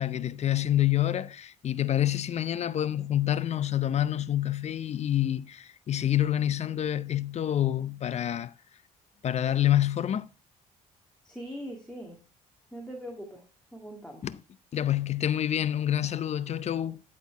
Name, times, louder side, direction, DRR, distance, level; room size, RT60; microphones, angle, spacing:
voice 1, 0.0-8.5 9.2-10.3 14.2-14.4 14.7-17.0, left 11 dB, 45° left, 0.6 m, -27 dB
voice 2, 11.2-12.2 12.7-13.4 13.7-14.3, equal, 5° left, 2.2 m, -41 dB
11.0 x 4.5 x 4.6 m
cardioid pair, 90°, 15 cm